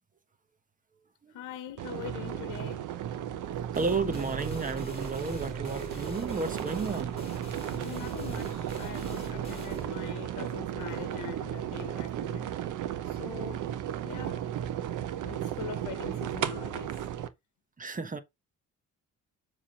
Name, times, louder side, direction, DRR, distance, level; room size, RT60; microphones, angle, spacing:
voice 1, 1.3-2.9 7.7-12.7 13.0-13.7 14.0-14.6 15.2-17.0, left 11 dB, 85° left, 1.0 m, -43 dB
sound 1, 1.8-17.3, right 11 dB, 80° right, 0.9 m, -35 dB
sound 2, 3.7-11.2, left 2 dB, 20° left, 4.4 m, -45 dB
voice 2, 3.7-7.2 17.8-18.2, right 4 dB, 25° right, 1.3 m, -32 dB
7.3 x 3.6 x 5.0 m
cardioid pair, 90°, 30 cm